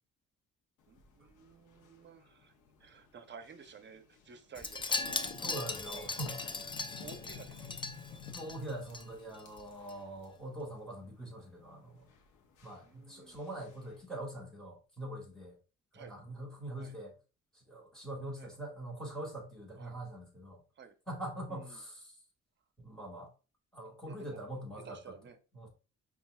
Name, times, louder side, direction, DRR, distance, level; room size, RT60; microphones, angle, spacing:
sound 1, 0.8-14.0, left 7 dB, 80° left, 0.8 m, -54 dB
voice 1, 0.9-2.5 2.8-5.3 5.8-6.1 7.0-8.2 12.8-13.4 15.9-16.2 16.8-17.0 18.4-18.5 19.8-20.0 20.7-20.9 21.5-21.8 24.0-24.5 24.8-25.4, right 6 dB, 40° right, 9 dB, 0.6 m, -53 dB
Wind chime, 4.6-9.0 9.3-9.6 9.9-10.0, left 3 dB, 15° left, 0.3 m, -38 dB
voice 2, 5.3-6.4 8.3-12.1 12.6-15.6 15.9-17.1 17.5-20.6 21.1-22.1 22.8-23.3 23.7-25.0 25.5-25.7, right 1 dB, ahead, 0 dB, 1.7 m, -43 dB
5.3 x 2.4 x 2.3 m, 0.33 s
cardioid pair, 90°, 30 cm